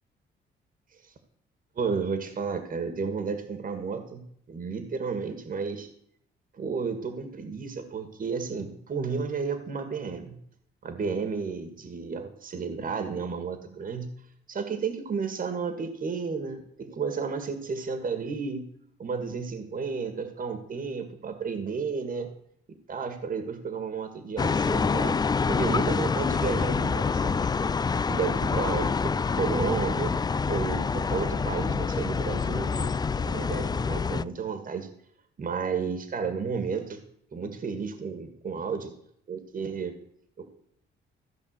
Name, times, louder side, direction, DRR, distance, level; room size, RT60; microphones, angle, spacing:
voice 1, 1.8-4.2 4.5-5.9 6.6-10.4 10.8-14.1 14.5-18.6 19.0-22.3 22.9-25.2 25.5-27.7 28.1-30.1 30.5-34.9 35.4-37.0 37.3-38.9 39.3-40.0 40.4-40.5, right 5 dB, 45° right, 8 dB, 1.7 m, -32 dB
sound 1, 24.4-34.2, left 5 dB, 20° left, 0.3 m, -26 dB
14.5 x 5.2 x 8.1 m, 0.70 s
cardioid pair, 90°, 20 cm